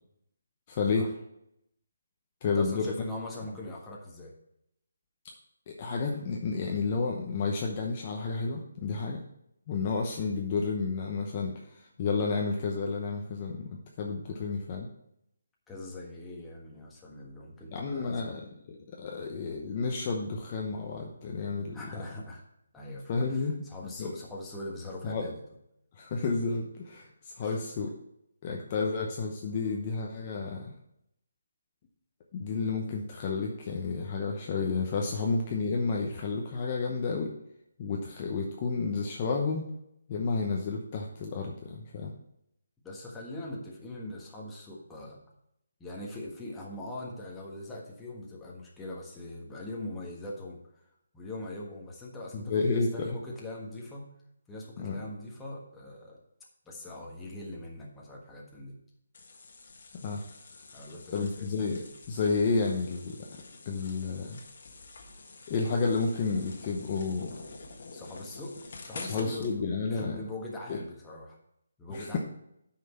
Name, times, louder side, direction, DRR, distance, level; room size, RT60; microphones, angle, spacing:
voice 1, 0.7-1.1 2.4-2.9 5.7-9.2 9.7-14.9 17.7-21.8 23.1-23.6 24.0-24.1 25.0-25.3 26.0-28.0 28.4-30.7 32.3-37.3 37.8-39.7 40.1-42.1 52.3-53.2 54.8-55.0 59.9-60.2 61.1-63.3 63.7-64.4 65.5-67.4 69.1-70.2 70.7-70.8 71.9-72.2, left 4 dB, 25° left, 0 dB, 0.9 m, -31 dB
voice 2, 2.4-4.3 15.7-18.4 21.7-22.4 22.7-25.4 27.4-27.6 42.8-45.2 45.8-50.9 51.1-54.1 54.5-56.2 56.6-58.8 60.7-61.5 67.9-68.6 68.8-71.4 71.8-72.2, left 1 dB, 5° left, -4 dB, 1.4 m, -42 dB
sound 1, 59.1-69.5, left 3 dB, 50° left, 1.5 m, -48 dB
9.2 x 5.9 x 4.4 m, 0.78 s
hypercardioid pair, 170°, 0 cm